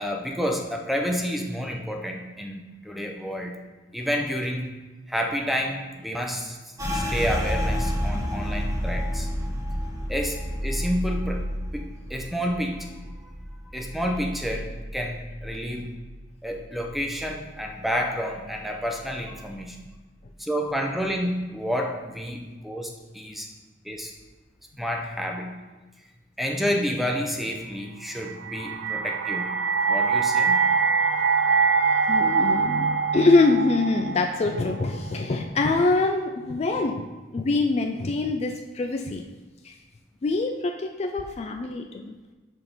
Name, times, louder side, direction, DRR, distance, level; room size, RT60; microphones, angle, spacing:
voice 1, 0.0-3.6 3.9-4.7 5.1-6.6 6.9-9.3 10.1-11.4 11.7-12.9 13.7-15.9 16.4-19.8 20.4-23.5 23.8-24.1 24.8-25.5 26.4-29.6 29.9-30.6, equal, ahead, 2 dB, 0.6 m, -29 dB
sound 1, 6.8-16.2 16.5-17.7 18.0-18.5 19.0-19.6, equal, 20° right, 1.1 m, -31 dB
sound 2, 28.3-35.4, right 5 dB, 70° right, 0.3 m, -24 dB
voice 2, 32.1-37.1 37.3-39.2 39.6-39.8 40.2-42.1, left 3 dB, 35° left, 4 dB, 0.3 m, -24 dB
6.2 x 4.3 x 5.1 m, 1.2 s
head